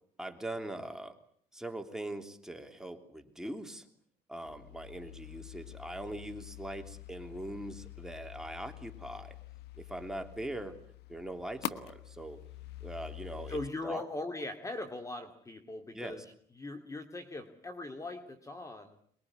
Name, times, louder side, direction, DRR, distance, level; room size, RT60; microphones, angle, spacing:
voice 1, 0.2-1.2 1.5-3.9 4.3-9.3 9.8-10.8 11.1-12.4 12.8-13.6 13.8-14.0 15.9-16.2, right 1 dB, 5° right, 5 dB, 3.2 m, -41 dB
sound 1, 4.4-13.7, left 13 dB, 80° left, 1.2 m, -46 dB
voice 2, 13.5-16.2 16.6-19.0, left 2 dB, 20° left, 7 dB, 2.3 m, -40 dB
24.0 x 21.5 x 9.6 m, 0.63 s
cardioid pair, 110°, 17 cm